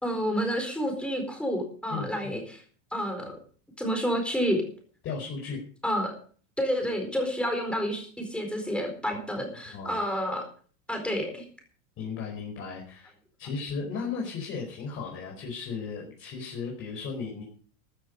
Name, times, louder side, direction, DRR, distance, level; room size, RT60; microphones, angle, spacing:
voice 1, 0.0-2.6 2.9-3.4 3.8-4.6 5.8-6.1 6.6-10.5 10.9-11.5, equal, ahead, 3 dB, 4.4 m, -29 dB
voice 2, 1.9-2.4 5.0-5.6 9.7-10.0 12.0-13.1 13.4-17.4, left 5 dB, 30° left, -1 dB, 4.8 m, -35 dB
14.0 x 13.0 x 5.3 m, 0.43 s
supercardioid pair, 160°, 42 cm